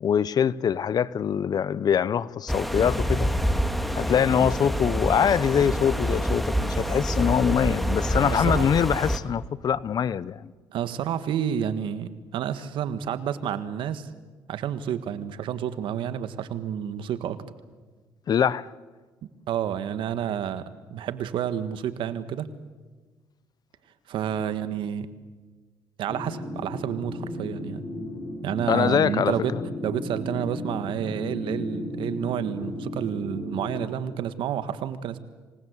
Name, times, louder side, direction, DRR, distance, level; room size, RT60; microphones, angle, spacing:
voice 1, 0.0-3.3 3.9-10.5 18.3-18.7 28.7-29.3, left 8 dB, 50° left, 0.8 m, -23 dB
sound 1, 2.5-9.2, equal, ahead, 2.0 m, -26 dB
voice 2, 8.2-8.7 10.7-14.1 14.5-17.4 19.5-22.5 24.1-25.1 26.0-27.8 28.4-29.6 29.8-35.2, right 9 dB, 70° right, 1.6 m, -30 dB
sound 2, 26.1-33.9, left 1 dB, 30° left, 4.6 m, -35 dB
26.0 x 19.0 x 8.2 m
cardioid pair, 85°, 9 cm